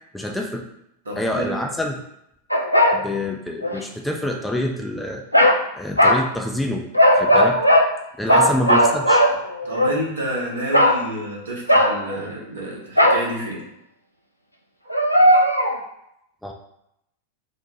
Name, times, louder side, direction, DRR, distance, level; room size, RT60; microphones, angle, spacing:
voice 1, 0.1-0.7 1.2-2.0 2.9-5.2 5.8-6.9 7.2-7.6 8.2-9.2 16.4-16.5, left 1 dB, 5° left, 1 dB, 0.4 m, -26 dB
voice 2, 1.1-1.6 8.3-8.5 9.6-13.7 14.8-15.0, right 1 dB, 70° right, -2 dB, 0.9 m, -30 dB
sound 1, 2.5-3.0 3.6-3.8 5.3-5.6 6.0-6.3 6.9-7.9 8.3-9.9 10.7-11.0 11.7-12.1 13.0-13.3 14.9-15.8, equal, 90° left, 0.3 m, -16 dB
2.9 x 2.1 x 4.1 m, 0.80 s
figure-of-eight pair, 90°, 0 cm